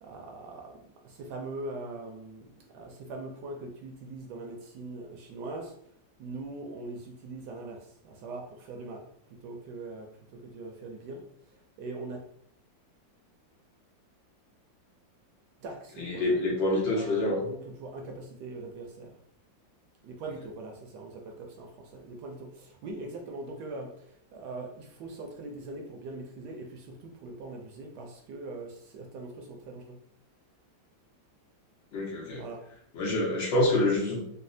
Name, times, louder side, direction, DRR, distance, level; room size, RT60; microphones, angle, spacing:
voice 1, 0.0-5.7 6.2-11.3 11.8-12.3 15.6-16.4 16.9-19.1 20.0-30.0 32.4-32.6, right 2 dB, 75° right, 2 dB, 1.1 m, -42 dB
voice 2, 16.0-17.5 31.9-32.4 32.9-34.2, left 2 dB, 85° left, -3 dB, 1.8 m, -26 dB
4.1 x 2.1 x 2.6 m, 0.67 s
omnidirectional pair, 2.0 m